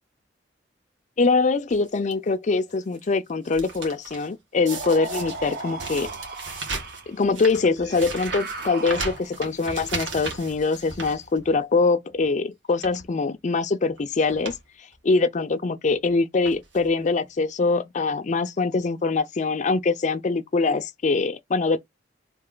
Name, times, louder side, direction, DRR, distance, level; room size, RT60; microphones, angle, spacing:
voice 1, 1.2-6.1 7.1-14.5 15.0-21.8, left 4 dB, 40° left, 0.4 m, -23 dB
sound 1, 1.7-2.1 2.7-3.0 3.3-4.3 4.7-11.8 12.1-12.3 12.7-13.1 13.9-14.0 14.3-14.6 14.9-15.0 15.9-16.1 16.4-16.9 17.7-17.8 18.0-18.1, right 3 dB, 85° right, 1.4 m, -36 dB
sound 2, 4.7-7.1 7.8-9.5, right 3 dB, 55° right, 1.0 m, -36 dB
3.3 x 2.8 x 3.7 m
head